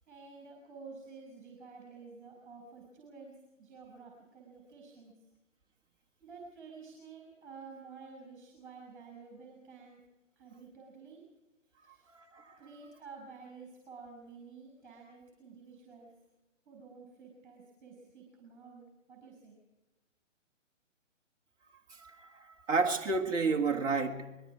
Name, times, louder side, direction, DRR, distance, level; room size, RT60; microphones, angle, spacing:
voice 1, 0.1-3.3 3.6-5.1 6.2-10.0 10.4-11.2 11.8-12.1 12.6-16.1 16.7-19.6, right 4 dB, 40° right, 0 dB, 5.7 m, -51 dB
voice 2, 12.1-12.6 21.9-24.4, right 4 dB, 10° right, -1 dB, 1.6 m, -31 dB
25.0 x 22.0 x 4.8 m, 1.1 s
figure-of-eight pair, 145°, 38 cm